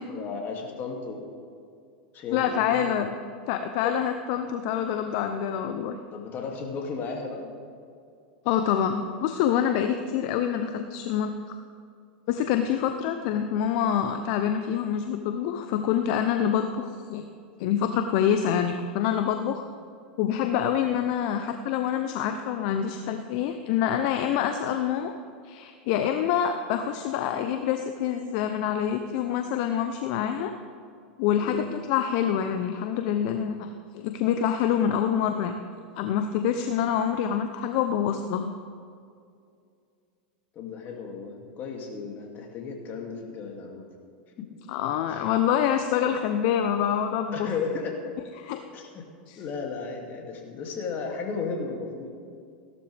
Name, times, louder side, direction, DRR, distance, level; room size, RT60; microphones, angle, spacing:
voice 1, 0.1-1.2 2.1-2.8 3.8-3.9 6.1-7.5 31.4-31.6 40.5-43.8 44.4-44.5 45.1-45.2 46.8-46.9 47.3-48.1 48.7-49.0 49.3-52.1, left 5 dB, 40° left, 1 dB, 2.6 m, -34 dB
voice 2, 2.3-3.1 3.5-6.0 8.4-11.3 12.3-17.3 17.6-19.6 20.2-25.1 25.4-30.5 31.2-35.5 36.0-38.5 44.7-47.5 48.4-48.6 49.3-49.4, left 9 dB, 55° left, 7 dB, 0.8 m, -26 dB
16.5 x 12.0 x 3.5 m, 2.3 s
hypercardioid pair, 105°, 5 cm